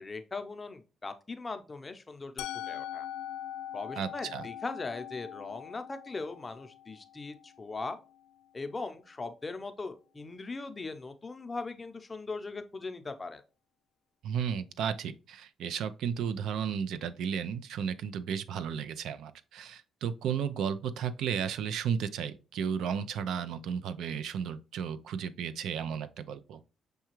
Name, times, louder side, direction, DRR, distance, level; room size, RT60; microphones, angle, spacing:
voice 1, 0.0-3.1 3.7-8.0 8.5-13.4, left 3 dB, 25° left, 0.6 m, -39 dB
Musical instrument, 2.4-8.3, left 11 dB, 90° left, 0.3 m, -42 dB
voice 2, 4.0-4.4 14.2-26.6, right 7 dB, 80° right, 0.3 m, -34 dB
6.5 x 2.3 x 3.0 m
cardioid pair, 90°, 0 cm